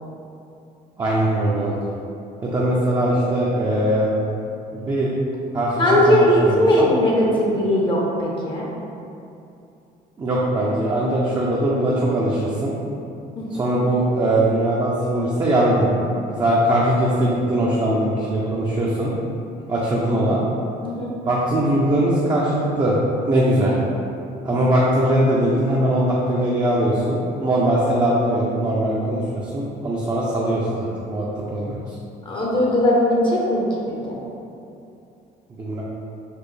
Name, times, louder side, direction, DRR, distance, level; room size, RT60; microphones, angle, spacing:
voice 1, 1.0-1.8 2.4-4.1 4.7-5.1 5.5-6.9 10.2-12.7 13.5-15.9 16.4-19.1 19.7-20.4 21.3-22.9 23.3-23.7 24.4-31.2 31.5-31.8 35.6-35.8, right 1 dB, 25° right, -6 dB, 0.5 m, -21 dB
voice 2, 5.8-8.7 13.4-13.7 20.8-21.1 32.3-33.6 34.1-34.2, left 1 dB, 30° left, -4 dB, 0.6 m, -19 dB
4.2 x 2.4 x 3.2 m, 2.7 s
cardioid pair, 110°, 17 cm